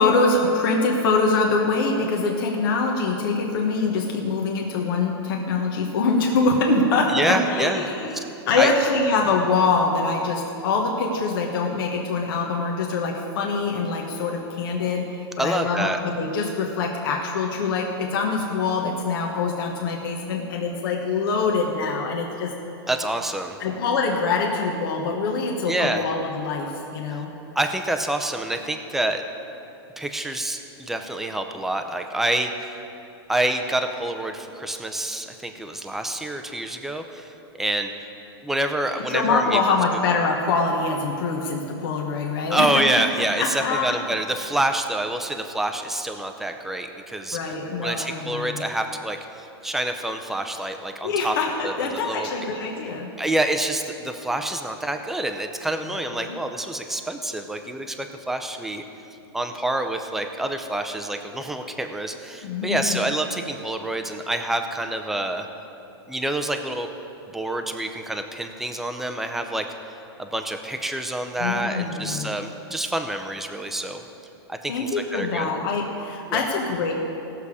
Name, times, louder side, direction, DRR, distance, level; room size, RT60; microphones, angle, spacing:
voice 1, 0.0-22.5 23.6-27.3 39.1-42.7 42.9-43.0 43.4-44.0 47.3-48.6 51.0-53.2 56.3-56.4 62.4-63.0 71.4-72.3 74.7-76.9, left 4 dB, 60° left, 0 dB, 1.3 m, -24 dB
voice 2, 7.1-7.9 8.1-8.2 8.6-8.7 15.4-16.0 22.9-23.6 25.7-26.1 27.6-29.2 30.0-32.8 33.3-37.9 38.4-39.6 42.5-47.5 47.8-51.3 51.6-52.3 53.2-58.8 59.3-65.5 66.1-66.9 67.3-69.7 70.2-74.0 74.5-75.5 76.3-76.4, right 1 dB, ahead, 5 dB, 0.5 m, -27 dB
18.0 x 6.9 x 4.8 m, 2.9 s
hypercardioid pair, 150°, 14 cm